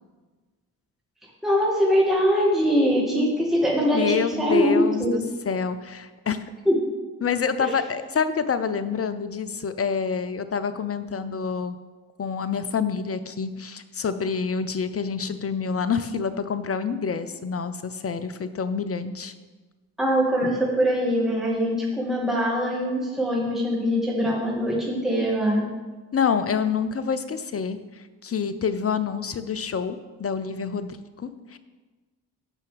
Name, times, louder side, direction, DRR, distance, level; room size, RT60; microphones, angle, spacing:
voice 1, 1.4-5.2 6.7-6.8 7.6-7.7 20.0-25.6, equal, ahead, -4 dB, 2.3 m, -22 dB
voice 2, 3.9-6.4 7.2-11.8 12.2-19.3 26.1-27.8 28.2-31.6, left 6 dB, 35° left, 11 dB, 0.8 m, -27 dB
15.5 x 5.7 x 3.5 m, 1.3 s
hypercardioid pair, 40°, 41 cm